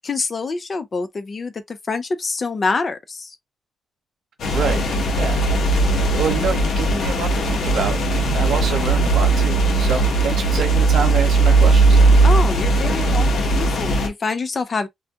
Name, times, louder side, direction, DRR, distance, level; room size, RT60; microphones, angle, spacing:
voice 1, 0.0-3.3 12.2-14.9, left 4 dB, 35° left, 0.5 m, -26 dB
sound 1, 4.4-14.1, right 2 dB, 65° left, 0.8 m, -18 dB
voice 2, 4.5-4.8 5.1-5.5 5.8-12.0, right 5 dB, 70° right, 0.9 m, -27 dB
2.3 x 2.2 x 2.7 m
cardioid pair, 110°, 0 cm